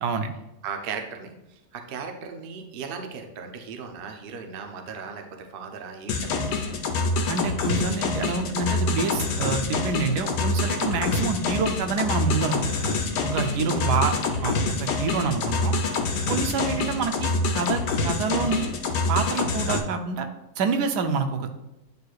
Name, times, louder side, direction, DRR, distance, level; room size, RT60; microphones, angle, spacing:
voice 1, 0.0-0.3 7.3-12.7 13.2-14.1 14.4-15.8 16.3-18.7 19.1-20.3 20.6-21.6, right 4 dB, 80° right, 7 dB, 1.2 m, -27 dB
voice 2, 0.6-6.4 9.3-9.4 13.6-14.0 14.3-14.5 15.0-15.3, right 6 dB, 55° right, 4 dB, 0.6 m, -37 dB
sound 1, 6.1-19.8, left 3 dB, 80° left, 1.3 m, -26 dB
9.4 x 4.6 x 2.4 m, 0.94 s
omnidirectional pair, 1.8 m